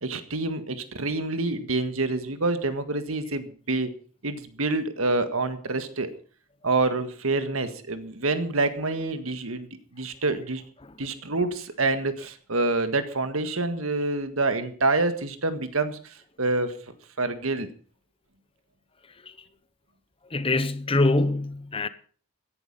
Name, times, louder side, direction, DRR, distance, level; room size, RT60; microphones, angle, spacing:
voice 1, 0.0-3.9 4.2-6.1 6.6-9.7 9.9-10.6 11.0-16.7 17.2-17.7, right 2 dB, 80° right, 1.7 m, -27 dB
voice 2, 20.3-21.9, left 2 dB, 25° left, 0.9 m, -24 dB
16.5 x 11.0 x 5.5 m
head